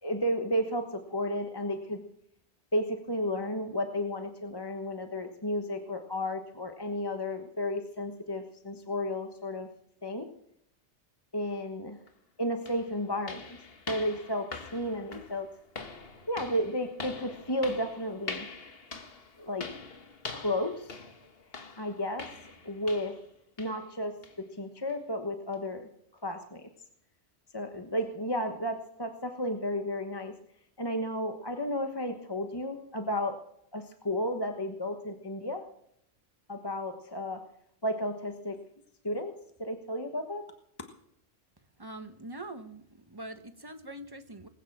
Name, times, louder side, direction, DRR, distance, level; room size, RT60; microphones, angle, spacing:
voice 1, 0.0-2.0 2.7-9.7 10.0-10.3 11.3-12.0 12.4-13.6 13.9-15.5 16.3-18.5 19.4-19.7 20.3-20.9 21.8-22.3 22.6-23.2 23.6-25.9 26.2-26.7 27.5-30.3 30.8-33.4 33.7-35.6 36.5-37.4 37.8-38.6 39.0-39.3 39.6-40.5, left 1 dB, 20° left, 5 dB, 1.2 m, -33 dB
sound 1, 12.1-12.2 12.7-23.3 23.6-23.9 24.2-24.4 24.9-25.0 25.5-25.6, left 4 dB, 55° left, 1.7 m, -44 dB
voice 2, 41.8-44.5, right 1 dB, 20° right, 9 dB, 1.2 m, -43 dB
20.0 x 9.0 x 7.3 m, 0.72 s
omnidirectional pair, 1.2 m